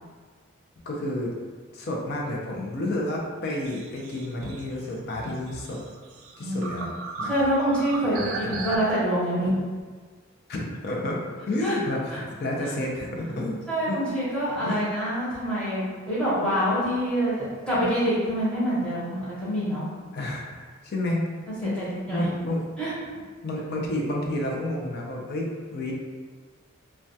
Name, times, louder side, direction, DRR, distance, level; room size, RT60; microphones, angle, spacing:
voice 1, 0.9-1.3 1.7-5.8 6.4-6.9 7.2-7.3 8.0-8.6 10.5-13.6 13.9-14.0 14.6-14.8 20.1-21.2 21.6-21.8 22.1-22.6 23.4-25.9, left 1 dB, 50° left, -1 dB, 0.4 m, -30 dB
sound 1, 3.5-8.8, right 3 dB, 75° right, 0.3 m, -37 dB
voice 2, 6.4-6.8 7.2-8.2 8.5-9.6 11.6-11.8 12.1-12.2 12.6-12.7 13.7-19.8 21.6-22.3 22.8-22.9, equal, 5° left, -10 dB, 0.7 m, -26 dB
2.2 x 2.2 x 2.6 m, 1.5 s
head